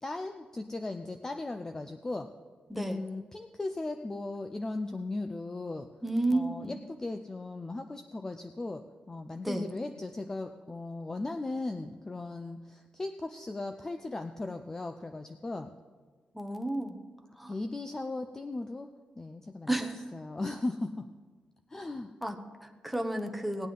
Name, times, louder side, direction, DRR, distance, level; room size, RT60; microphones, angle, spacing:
voice 1, 0.0-2.3 2.7-5.9 6.3-8.8 9.1-15.7 17.5-18.9 19.2-21.1 21.7-22.1, left 2 dB, 20° left, 7 dB, 0.4 m, -37 dB
voice 2, 6.0-6.7 9.4-9.7 16.3-17.0 17.4-17.5 19.7-20.0 22.2-23.7, right 1 dB, ahead, 5 dB, 0.9 m, -32 dB
17.5 x 9.2 x 3.8 m, 1.4 s
wide cardioid pair, 165°, 3 cm